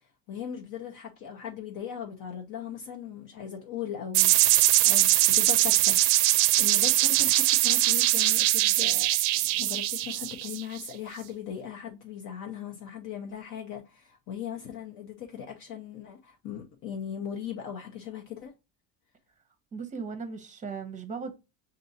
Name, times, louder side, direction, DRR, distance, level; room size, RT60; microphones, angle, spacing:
voice 1, 0.3-6.2 6.6-18.5, left 8 dB, 60° left, 0.8 m, -39 dB
sound 1, 4.1-10.9, right 16 dB, 90° right, 0.5 m, -22 dB
voice 2, 19.7-21.4, right 5 dB, 20° right, 0.7 m, -37 dB
6.6 x 2.7 x 2.7 m
cardioid pair, 155°, 37 cm